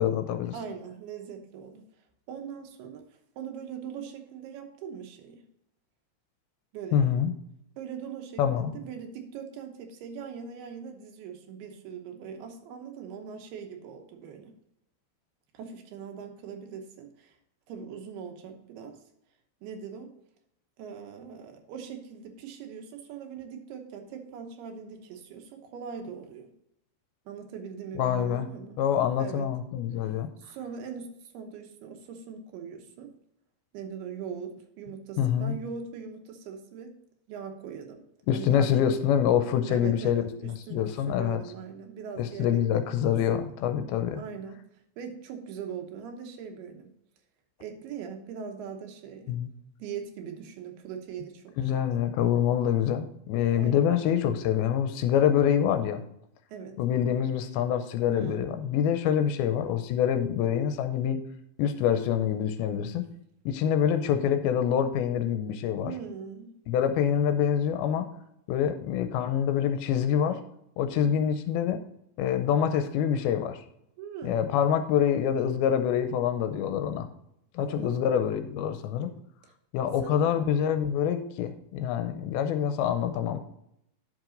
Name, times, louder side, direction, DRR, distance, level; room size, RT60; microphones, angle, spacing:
voice 1, 0.0-0.5 6.9-7.3 8.4-8.8 28.0-28.5 28.8-30.3 35.2-35.5 38.3-41.4 42.2-44.2 49.3-49.5 51.6-56.0 56.8-61.2 61.6-63.0 63.5-65.9 66.7-68.1 68.5-70.4 70.8-71.8 72.2-73.6 74.2-77.1 77.5-79.1 79.7-83.4, left 9 dB, 80° left, 8 dB, 2.4 m, -26 dB
voice 2, 0.5-1.9 2.3-3.1 3.4-5.4 6.7-7.1 7.8-14.6 15.5-17.4 17.7-19.0 19.6-20.1 20.8-26.5 27.3-28.8 29.2-29.5 30.0-33.1 33.7-36.9 37.3-38.0 38.3-38.9 39.7-43.1 44.1-44.6 45.0-46.9 47.6-49.4 49.8-52.0 53.5-54.0 56.5-56.8 58.1-58.6 65.8-66.6 71.0-71.1 74.0-74.5 77.6-78.2 79.4-79.5 80.0-80.4, right 7 dB, 80° right, 4 dB, 3.0 m, -41 dB
10.5 x 6.1 x 3.8 m, 0.78 s
omnidirectional pair, 4.6 m